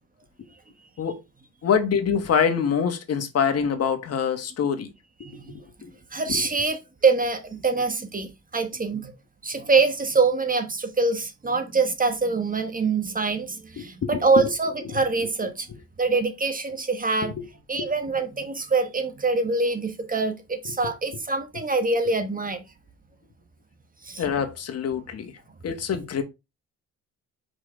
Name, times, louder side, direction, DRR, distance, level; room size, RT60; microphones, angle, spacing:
voice 1, 1.6-4.9 5.5-5.9 6.3-6.4 13.8-14.2 14.8-15.0 17.2-17.4 17.8-17.9 20.6-20.7 24.2-25.3 25.6-26.2, left 7 dB, 55° left, 1.5 m, -25 dB
voice 2, 5.2-5.6 6.1-9.1 9.4-15.7 16.0-17.3 17.7-22.6 24.0-24.2, right 4 dB, 30° right, 1.2 m, -24 dB
5.1 x 4.8 x 4.5 m
cardioid pair, 90°, 30 cm